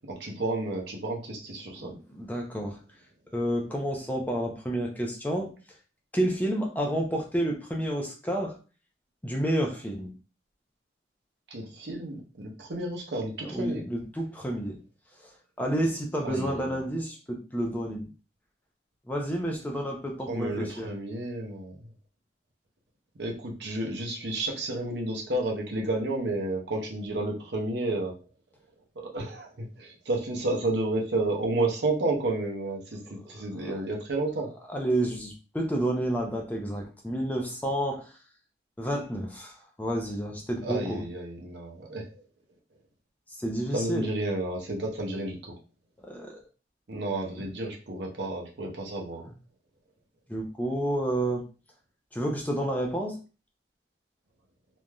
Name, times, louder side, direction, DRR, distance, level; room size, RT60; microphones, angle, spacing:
voice 1, 0.1-1.9 11.5-13.8 16.2-16.8 20.3-21.8 23.2-28.1 29.1-33.0 33.3-34.5 40.6-42.2 43.7-45.6 46.9-49.3, right 2 dB, 70° right, 1 dB, 0.7 m, -31 dB
voice 2, 1.8-2.8 3.3-5.5 6.1-8.6 9.2-10.1 13.4-14.8 15.6-18.1 19.1-20.9 33.6-33.8 34.7-38.1 38.8-41.0 43.4-44.1 46.0-46.4 50.3-51.4 52.1-53.2, right 1 dB, 10° left, 0 dB, 0.5 m, -30 dB
3.2 x 2.6 x 2.2 m, 0.33 s
head